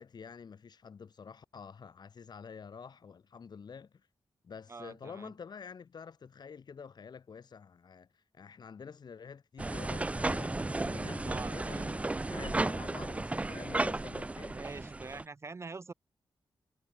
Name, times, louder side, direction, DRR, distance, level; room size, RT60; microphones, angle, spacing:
voice 1, 0.0-4.1 4.4-14.6, left 6 dB, 60° left, 7.2 m, -48 dB
voice 2, 4.7-5.3 11.2-11.9 14.5-15.9, right 4 dB, 35° right, 2.9 m, -45 dB
sound 1, 9.6-15.2, right 2 dB, 15° right, 0.5 m, -34 dB
wide cardioid pair, 110°, 8 cm